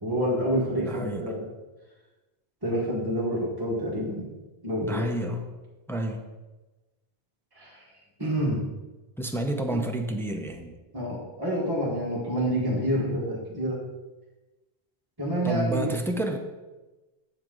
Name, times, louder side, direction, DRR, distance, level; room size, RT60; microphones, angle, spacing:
voice 1, 0.0-1.5 2.6-4.2 4.6-5.0 7.5-7.8 8.2-8.6 9.7-9.8 10.9-13.8 15.2-16.0, equal, 20° right, -5 dB, 1.6 m, -28 dB
voice 2, 0.8-1.2 4.8-5.5 5.9-6.3 9.2-10.7 15.4-16.4, right 1 dB, 5° left, 4 dB, 0.5 m, -29 dB
7.6 x 7.3 x 3.9 m, 1.1 s
omnidirectional pair, 1.1 m